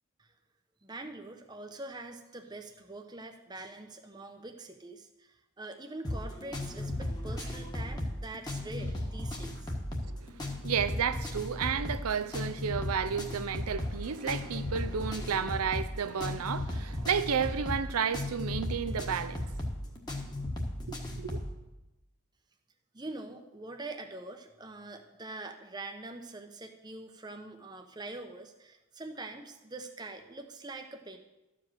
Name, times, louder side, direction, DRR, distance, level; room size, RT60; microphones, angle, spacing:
voice 1, 0.8-9.7 22.9-31.2, right 2 dB, 20° right, 0.8 m, -44 dB
sound 1, 6.0-21.5, left 1 dB, 20° left, 1.3 m, -36 dB
voice 2, 10.0-19.5 20.9-21.4, right 7 dB, 80° right, 0.5 m, -32 dB
13.0 x 5.1 x 7.6 m
head